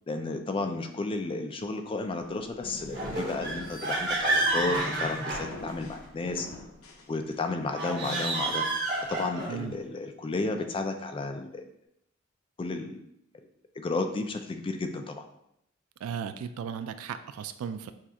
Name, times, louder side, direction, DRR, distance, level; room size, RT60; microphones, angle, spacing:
voice 1, 0.1-6.5 7.1-8.7 9.1-11.7 12.6-13.0 13.8-15.2, left 3 dB, 25° left, 6 dB, 0.3 m, -32 dB
sound 1, 2.0-7.7, left 2 dB, 85° left, 0.6 m, -45 dB
sound 2, 2.9-6.0 7.6-9.6, right 2 dB, 55° right, 1.4 m, -30 dB
voice 2, 16.0-17.9, right 7 dB, 85° right, 11 dB, 0.3 m, -36 dB
6.1 x 2.4 x 2.8 m, 0.76 s
head